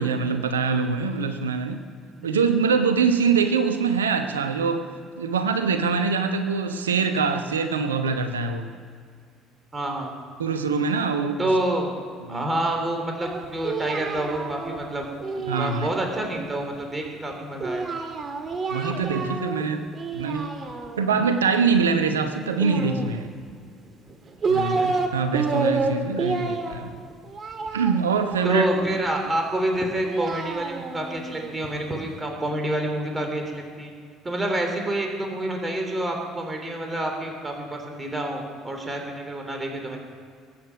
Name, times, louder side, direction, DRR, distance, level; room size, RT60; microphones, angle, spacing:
voice 1, 0.0-1.9 2.2-4.8 5.2-8.7 10.4-11.5 12.3-12.5 15.4-15.9 18.7-20.5 21.0-23.3 24.5-26.9 27.7-28.7, right 5 dB, 80° right, 8 dB, 0.9 m, -24 dB
voice 2, 9.7-10.1 11.4-15.0 15.6-17.9 21.2-21.3 24.5-24.9 28.4-33.9 34.2-40.0, right 1 dB, 20° right, 3 dB, 3.4 m, -28 dB
Singing, 13.2-16.5 17.6-19.6 19.9-21.2 22.6-23.5 24.1-25.1 25.3-29.0 29.8-32.0, right 4 dB, 35° right, 2.0 m, -29 dB
22.5 x 8.9 x 5.9 m, 2.1 s
figure-of-eight pair, 55°, 0 cm